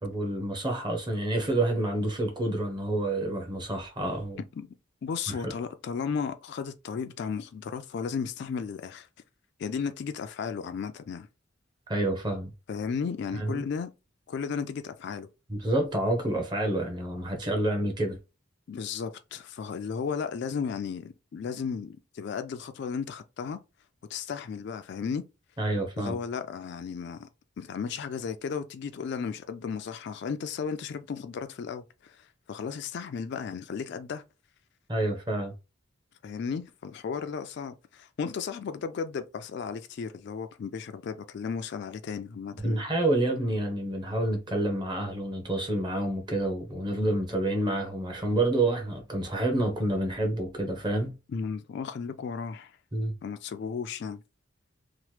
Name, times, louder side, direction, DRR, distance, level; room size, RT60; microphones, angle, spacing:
voice 1, 0.0-4.4 5.3-5.5 11.9-12.5 13.3-13.6 15.5-18.2 25.6-26.2 34.9-35.5 42.6-51.2 52.9-53.1, right 1 dB, 20° right, 0.7 m, -28 dB
voice 2, 5.0-9.1 9.6-11.3 12.7-13.9 14.3-15.3 18.7-23.6 24.1-25.2 26.0-27.3 27.6-34.2 36.2-42.8 51.3-52.7 53.2-54.2, left 6 dB, 55° left, 0.3 m, -34 dB
2.9 x 2.1 x 3.1 m
head